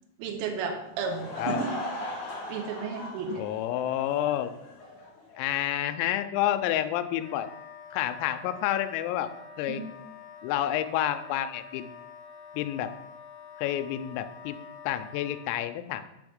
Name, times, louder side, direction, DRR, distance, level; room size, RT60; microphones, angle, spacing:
voice 1, 0.2-1.8 2.5-3.5 9.7-9.8, right 5 dB, 85° right, 5 dB, 3.4 m, -33 dB
Laughter / Crowd, 0.9-5.4, left 2 dB, 60° left, 3.7 m, -39 dB
voice 2, 3.4-4.5 5.4-7.5 7.9-9.3 9.6-9.8 10.4-11.9 12.5-12.9 13.6-14.6 14.9-16.1, left 12 dB, 90° left, 9 dB, 3.2 m, -29 dB
Wind instrument woodwind instrument, 7.2-15.5, left 5 dB, 75° left, 3.2 m, -47 dB
8.2 x 3.5 x 6.4 m, 0.91 s
omnidirectional pair, 5.9 m